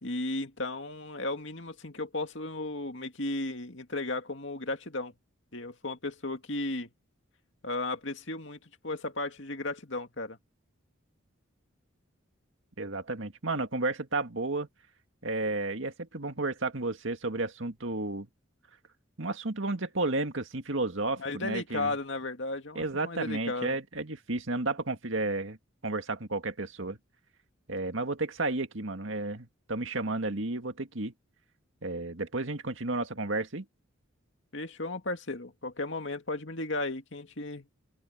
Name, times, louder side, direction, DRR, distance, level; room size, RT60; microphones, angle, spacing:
voice 1, 0.0-5.1 5.5-6.9 7.6-8.6 8.8-10.4 21.2-23.8 34.5-37.7, left 2 dB, 60° left, 2.3 m, -35 dB
voice 2, 12.8-14.7 15.2-18.3 19.2-21.9 22.8-25.6 25.8-27.0 27.7-31.1 31.8-33.7, right 2 dB, 65° right, 2.0 m, -32 dB
open air
head